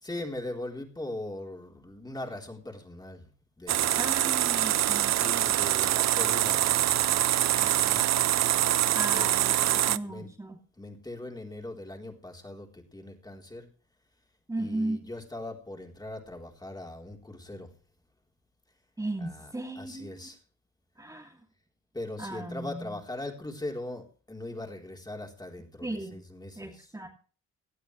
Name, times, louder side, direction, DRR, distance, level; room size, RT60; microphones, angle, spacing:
voice 1, 0.0-3.3 3.6-4.1 5.1-10.3 10.8-13.7 14.6-17.7 19.2-20.4 21.9-27.1, left 2 dB, 15° left, 1 dB, 4.0 m, -41 dB
sound 1, 3.7-10.0, right 13 dB, 60° right, 0.6 m, -25 dB
voice 2, 4.0-5.2 8.9-10.6 14.5-15.1 19.0-20.3 21.0-21.4 22.2-23.0 25.8-26.2 26.6-27.1, right 1 dB, 10° right, -1 dB, 2.9 m, -36 dB
19.0 x 12.0 x 3.3 m, 0.39 s
cardioid pair, 90°, 30 cm